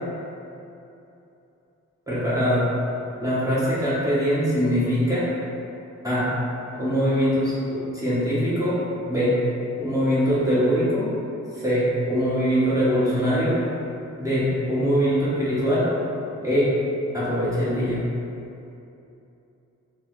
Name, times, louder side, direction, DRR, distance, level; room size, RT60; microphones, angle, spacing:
voice 1, 2.1-2.6 3.2-5.3 6.0-6.3 6.7-8.8 9.1-9.4 9.8-11.1 11.5-13.6 14.2-15.9 16.4-16.7 17.1-18.0, equal, 10° right, -10 dB, 1.0 m, -22 dB
3.6 x 2.0 x 3.1 m, 2.8 s
cardioid pair, 80°, 30 cm